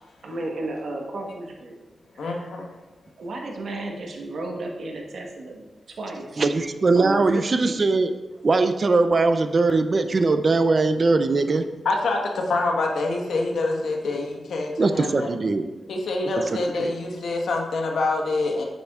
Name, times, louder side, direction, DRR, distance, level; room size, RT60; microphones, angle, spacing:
voice 1, 0.2-1.7 2.1-2.4 3.2-5.7 6.0-6.4 6.9-7.7, right 2 dB, 65° right, 1 dB, 1.2 m, -33 dB
voice 2, 2.2-2.7 11.8-15.3 15.9-18.6, left 2 dB, 80° left, 1 dB, 1.2 m, -26 dB
voice 3, 6.4-8.1 8.4-11.7 14.8-15.7 16.5-16.9, right 3 dB, 35° right, 9 dB, 0.4 m, -21 dB
9.4 x 6.8 x 2.4 m, 1.1 s
wide cardioid pair, 145°, 0 cm